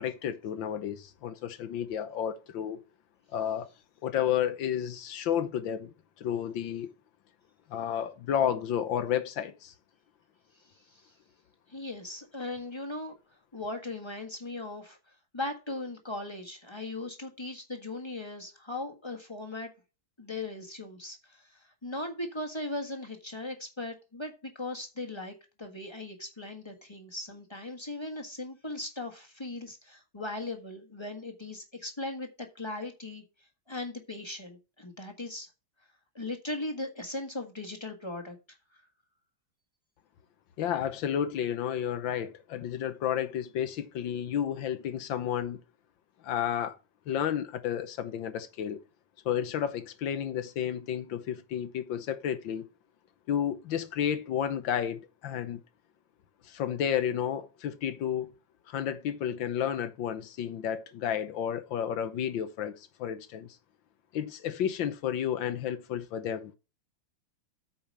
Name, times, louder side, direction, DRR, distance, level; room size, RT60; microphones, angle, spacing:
voice 1, 0.0-2.8 3.3-3.7 4.0-6.9 7.7-9.7 40.6-45.6 46.2-46.8 47.1-48.8 49.2-52.7 53.3-55.6 56.5-58.3 58.7-63.5 64.1-66.6, left 9 dB, 75° left, 1.7 m, -31 dB
voice 2, 11.7-13.2 13.5-15.0 15.3-19.7 20.2-33.2 33.7-35.5 36.1-38.4, left 2 dB, 15° left, 1.4 m, -38 dB
8.8 x 5.0 x 5.3 m
omnidirectional pair, 2.1 m